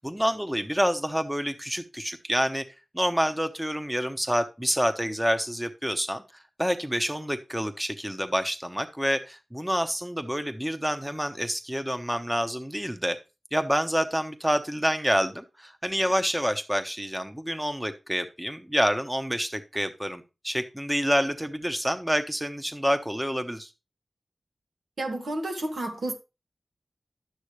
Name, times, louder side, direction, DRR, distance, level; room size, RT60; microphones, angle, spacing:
voice 1, 0.0-2.6 2.9-6.2 6.6-13.2 13.5-23.7, equal, 10° right, 1.1 m, -27 dB
voice 2, 25.0-26.1, right 1 dB, 80° right, 2.1 m, -31 dB
11.0 x 8.1 x 3.2 m
cardioid pair, 50°, 0 cm